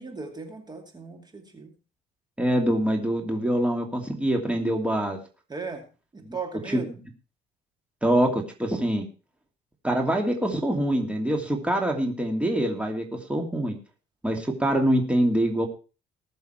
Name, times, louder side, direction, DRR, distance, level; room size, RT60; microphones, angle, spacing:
voice 1, 0.0-1.7 5.5-6.9, right 4 dB, 25° right, 5 dB, 2.6 m, -37 dB
voice 2, 2.4-5.2 6.3-6.4 6.7-6.8 8.0-9.1 9.8-13.0 13.3-13.8 14.2-15.7, right 1 dB, 5° right, 2 dB, 2.6 m, -24 dB
19.0 x 7.1 x 4.5 m, 0.34 s
cardioid pair, 110°, 17 cm